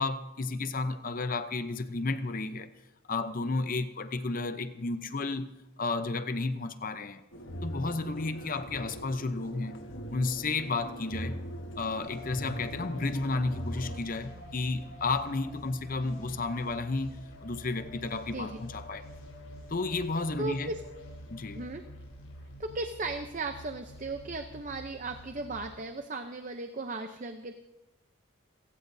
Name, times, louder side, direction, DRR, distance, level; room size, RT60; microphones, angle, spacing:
voice 1, 0.0-2.7 3.1-5.5 5.8-7.2 7.6-9.8 10.1-11.4 11.8-17.2 17.4-19.1 19.7-20.7 21.3-21.6, left 3 dB, 40° left, 0.7 m, -32 dB
sound 1, 7.3-14.0, equal, 60° left, 1.3 m, -41 dB
sound 2, 12.0-25.7, equal, 90° left, 7.1 m, -47 dB
voice 2, 20.4-20.8 21.5-21.8 22.6-27.5, right 3 dB, 35° right, 0.7 m, -36 dB
27.5 x 17.0 x 2.7 m
head